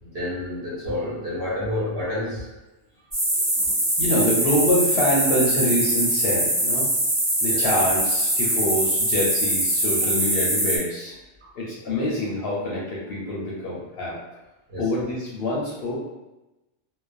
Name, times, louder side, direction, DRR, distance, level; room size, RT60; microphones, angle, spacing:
voice 1, 0.0-2.5 3.5-3.7 7.5-7.6 11.4-11.6 14.7-14.8, left 1 dB, 55° right, -7 dB, 1.0 m, -29 dB
sound 1, 3.1-10.8, right 1 dB, 20° right, 0.5 m, -23 dB
voice 2, 3.3-3.7 4.0-6.9 7.4-11.1 11.5-14.2 14.8-16.0, left 1 dB, 60° left, -6 dB, 0.7 m, -25 dB
2.4 x 2.1 x 2.4 m, 1.0 s
omnidirectional pair, 1.3 m